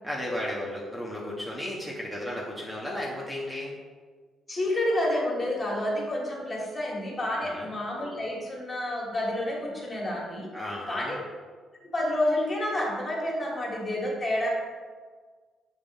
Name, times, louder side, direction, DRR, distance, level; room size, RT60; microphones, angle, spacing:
voice 1, 0.0-3.7 7.4-7.7 10.5-11.2, left 1 dB, 5° right, -5 dB, 1.1 m, -34 dB
voice 2, 4.5-10.5 10.9-11.2 11.9-14.5, left 1 dB, 30° left, -3 dB, 1.8 m, -29 dB
6.9 x 2.6 x 5.4 m, 1.5 s
cardioid pair, 90°, 0 cm